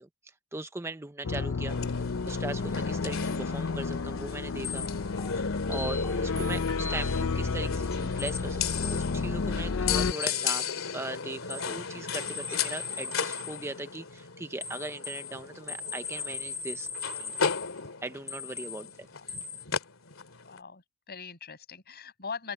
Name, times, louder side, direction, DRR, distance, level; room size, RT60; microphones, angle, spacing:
voice 1, 0.0-4.9 5.4-10.7 10.9-16.9 17.2-17.4 18.0-19.1, right 2 dB, 15° right, 0.7 m, -39 dB
sound 1, 1.2-10.1, left 4 dB, 70° left, 0.6 m, -31 dB
sound 2, 1.7-20.6, left 6 dB, 85° left, 2.6 m, -36 dB
sound 3, 3.1-3.5 4.3-4.4 4.6-7.3 7.6-9.2 10.2-10.8 11.5-13.7 14.6-17.8 18.3-18.9 19.3-19.6, left 5 dB, 15° left, 1.8 m, -39 dB
voice 2, 20.4-22.5, left 5 dB, 50° left, 6.1 m, -41 dB
open air
head